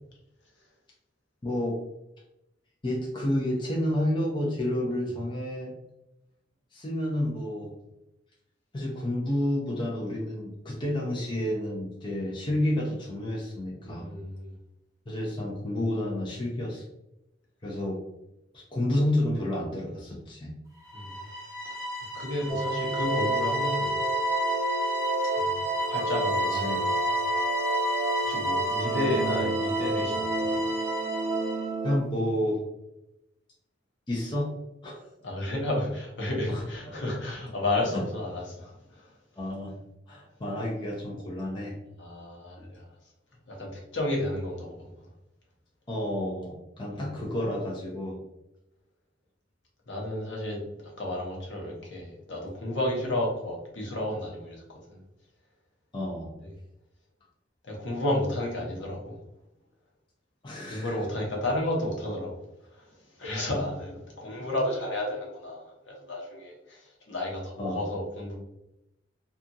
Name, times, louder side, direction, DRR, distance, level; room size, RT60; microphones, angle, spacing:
voice 1, 1.4-1.8 2.8-5.7 6.7-7.7 8.7-14.1 15.1-16.8 17.6-18.0 18.5-20.5 26.5-26.8 29.0-29.1 31.8-32.6 34.1-34.5 34.8-35.0 36.5-37.0 37.9-38.0 39.4-39.7 40.1-41.7 45.9-48.2 55.9-56.3 60.4-60.9 67.6-67.8, left 1 dB, 25° left, -3 dB, 0.5 m, -30 dB
voice 2, 13.8-14.5 20.9-21.1 22.1-24.0 25.5-25.6 25.9-26.8 28.2-30.6 35.2-39.1 42.0-42.8 43.5-44.8 46.9-47.1 49.9-54.6 54.9-55.0 56.4-56.5 57.6-59.2 60.7-62.4 62.7-68.4, left 1 dB, 75° left, -2 dB, 0.8 m, -32 dB
sound 1, 20.9-31.6, right 1 dB, 15° right, 1.0 m, -30 dB
sound 2, 22.5-32.0, right 2 dB, 30° right, 0.3 m, -31 dB
2.8 x 2.3 x 2.6 m, 0.89 s
head